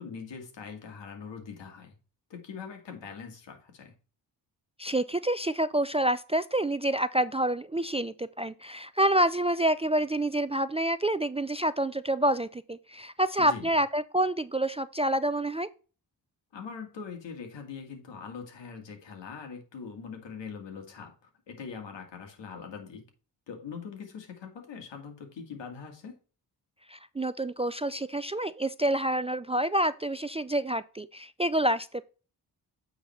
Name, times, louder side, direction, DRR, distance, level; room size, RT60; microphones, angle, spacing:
voice 1, 0.0-2.0 2.3-3.9 13.4-13.7 16.5-23.0 23.5-26.2, left 6 dB, 80° left, 2.2 m, -42 dB
voice 2, 4.8-15.7 26.9-32.0, right 1 dB, 15° right, 0.3 m, -28 dB
8.8 x 4.0 x 4.3 m
cardioid pair, 65°, 43 cm